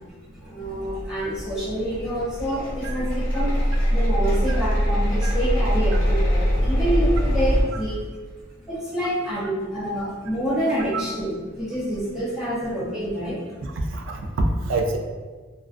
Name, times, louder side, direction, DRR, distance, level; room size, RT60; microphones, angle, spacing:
voice 1, 0.3-8.1 8.6-13.4, equal, 5° right, -11 dB, 0.5 m, -27 dB
sound 1, 0.6-7.6, equal, 45° left, 0.7 m, -23 dB
voice 2, 13.6-14.3 14.6-15.0, right 3 dB, 70° right, 3 dB, 0.3 m, -28 dB
2.3 x 2.1 x 2.5 m, 1.4 s
head